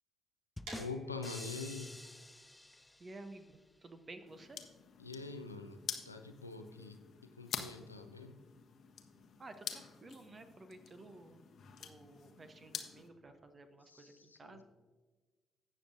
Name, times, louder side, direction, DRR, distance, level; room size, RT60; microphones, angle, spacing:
sound 1, 0.6-3.4, left 1 dB, 10° left, 0.4 m, -49 dB
voice 1, 0.7-1.9 5.0-5.8 6.0-8.4 13.8-14.6, left 4 dB, 90° left, 6 dB, 0.5 m, -45 dB
sound 2, 0.7-6.4, right 2 dB, 70° right, 2.0 m, -56 dB
voice 2, 3.0-4.6 9.4-11.4 11.8-14.6, right 2 dB, 35° right, 8 dB, 0.9 m, -53 dB
sound 3, 4.3-13.1, left 7 dB, 55° left, 1.0 m, -48 dB
16.5 x 6.5 x 2.6 m, 1.3 s
figure-of-eight pair, 40°, 0 cm